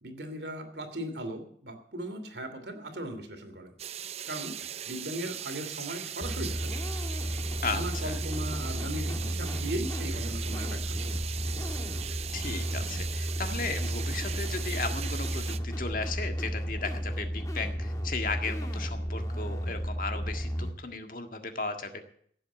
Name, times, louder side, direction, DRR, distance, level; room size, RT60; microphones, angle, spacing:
voice 1, 0.0-3.7 4.3-4.6 4.9-6.9 7.7-11.2, right 1 dB, 70° right, 6 dB, 2.7 m, -38 dB
sound 1, 3.8-15.6, right 9 dB, 35° right, 0.5 m, -39 dB
sound 2, 6.2-20.7, equal, 20° left, 1.8 m, -33 dB
voice 2, 7.6-8.2 12.3-22.0, left 4 dB, 50° left, 6 dB, 1.7 m, -35 dB
16.5 x 7.6 x 8.1 m, 0.63 s
head